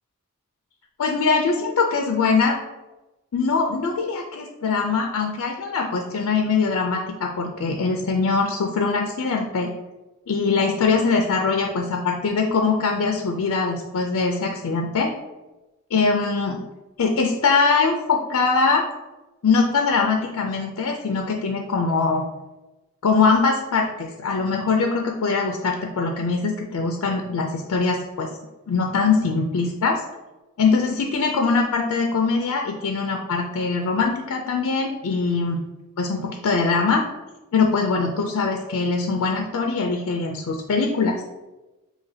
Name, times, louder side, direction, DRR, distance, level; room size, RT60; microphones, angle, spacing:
voice 1, 1.0-2.6 3.3-9.7 10.3-15.1 15.9-16.6 17.0-18.9 19.4-22.2 23.0-28.3 28.7-30.0 30.6-35.6 36.0-37.0 37.5-41.2, left 4 dB, 85° left, 2 dB, 0.4 m, -22 dB
5.6 x 2.9 x 2.7 m, 1.1 s
head